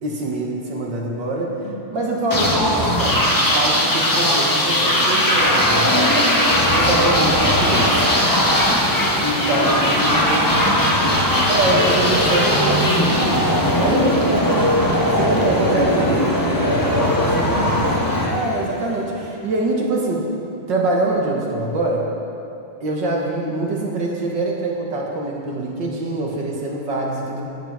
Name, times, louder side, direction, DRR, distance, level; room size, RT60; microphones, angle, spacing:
voice 1, 0.0-1.6 1.9-6.3 6.6-8.1 9.2-10.6 11.5-13.4 13.7-14.7 15.1-18.0 18.3-20.3 20.7-22.1 22.8-27.4, right 2 dB, 60° right, -1 dB, 2.0 m, -24 dB
sound 1, 2.3-19.0, left 1 dB, 15° left, 0.8 m, -18 dB
voice 2, 9.3-11.3 16.4-18.5, left 2 dB, 85° left, -2 dB, 2.6 m, -32 dB
9.1 x 8.3 x 7.3 m, 2.8 s
omnidirectional pair, 2.3 m